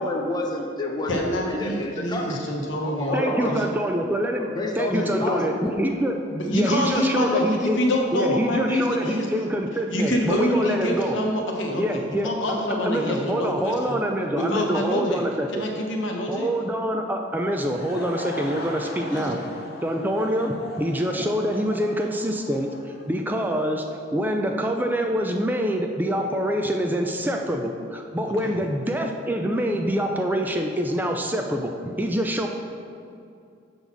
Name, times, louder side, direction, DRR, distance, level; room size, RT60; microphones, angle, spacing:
voice 1, 0.0-2.4 2.8-3.6 4.4-5.6, left 1 dB, 20° left, 0 dB, 0.7 m, -29 dB
voice 2, 1.1-3.6 6.3-9.3 9.9-14.0 14.3-15.2 15.5-16.5 18.9-19.3 28.4-28.5, left 1 dB, 75° left, 1 dB, 1.0 m, -26 dB
voice 3, 3.1-4.5 4.8-6.2 6.5-7.8 8.1-11.2 11.8-15.7 16.3-19.4 19.8-23.8 24.1-32.5, equal, 10° right, 3 dB, 0.3 m, -25 dB
Laughter / Crowd, 17.3-23.7, left 2 dB, 55° left, 0.8 m, -39 dB
6.9 x 3.9 x 5.9 m, 2.5 s
head